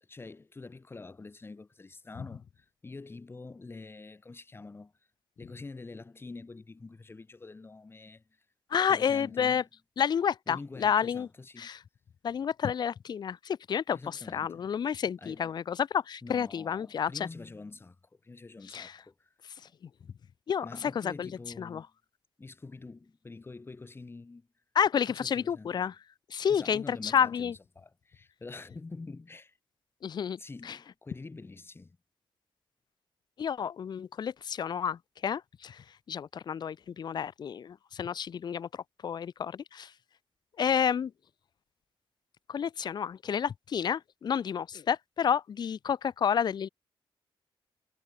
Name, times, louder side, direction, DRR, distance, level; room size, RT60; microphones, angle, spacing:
voice 1, 0.1-4.9 5.4-8.2 8.8-9.7 10.5-11.7 13.9-14.7 15.2-15.5 16.2-18.0 18.2-19.3 20.6-21.9 22.4-24.5 25.1-25.9 26.5-29.6 30.4-32.0, left 3 dB, 25° left, 1.2 m, -46 dB
voice 2, 8.7-9.6 10.0-11.3 11.6-11.8 12.2-17.3 18.7-18.9 20.5-21.3 21.6-21.8 24.7-25.9 26.3-27.5 30.0-30.4 30.7-30.8 33.4-39.9 40.6-41.1 42.5-46.7, left 8 dB, 45° left, 0.4 m, -30 dB
wide cardioid pair, 115°, 10 cm